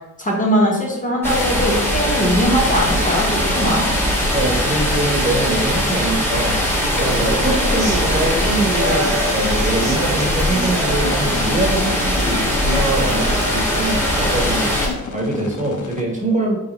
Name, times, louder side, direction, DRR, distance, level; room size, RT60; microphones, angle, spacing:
voice 1, 0.2-3.9, equal, 25° left, -3 dB, 1.0 m, -20 dB
sound 1, 1.2-14.9, equal, 5° left, 1.3 m, -20 dB
voice 2, 4.3-14.7 15.1-16.6, right 2 dB, 25° right, -2 dB, 1.2 m, -23 dB
sound 2, 6.9-14.9, right 1 dB, 80° right, 1.4 m, -28 dB
sound 3, 9.4-16.0, left 5 dB, 75° left, 0.5 m, -34 dB
4.6 x 3.5 x 3.0 m, 0.94 s
wide cardioid pair, 100°, 31 cm